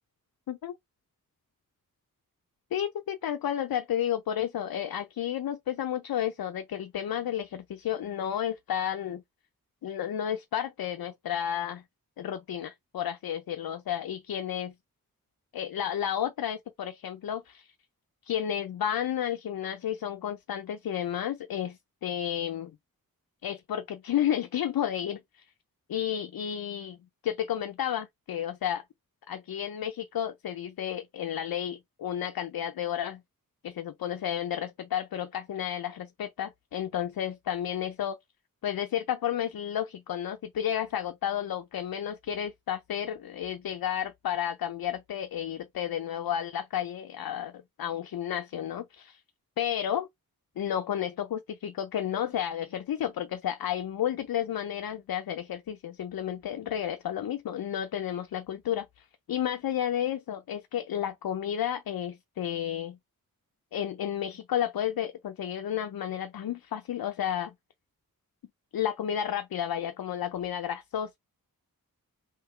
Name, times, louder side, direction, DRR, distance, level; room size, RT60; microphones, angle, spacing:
voice 1, 2.7-9.2 9.8-11.8 12.2-14.7 15.5-17.7 18.3-22.7 23.4-25.4 25.9-27.0 27.2-28.8 29.3-33.2 33.6-38.2 38.6-49.2 49.6-50.1 50.6-63.0 63.7-67.5 68.7-71.2, left 10 dB, 80° left, 0.5 m, -32 dB
3.6 x 2.7 x 4.3 m
wide cardioid pair, 75°, 35 cm